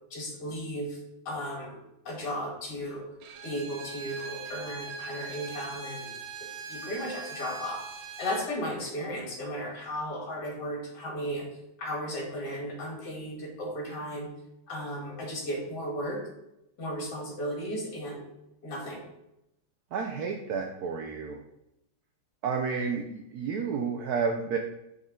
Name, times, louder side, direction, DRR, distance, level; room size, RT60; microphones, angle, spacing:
voice 1, 0.1-1.0 1.3-1.8 2.1-3.0 3.4-6.1 6.7-7.8 8.2-11.5 11.8-14.3 14.7-16.2 16.8-18.3 18.6-19.1, equal, 60° left, -1 dB, 2.2 m, -35 dB
Bowed string instrument, 3.2-8.5, right 4 dB, 90° right, 1.6 m, -41 dB
voice 2, 19.9-21.4 22.4-24.6, right 5 dB, 70° right, 3 dB, 0.9 m, -31 dB
6.4 x 4.6 x 3.7 m, 0.88 s
omnidirectional pair, 2.2 m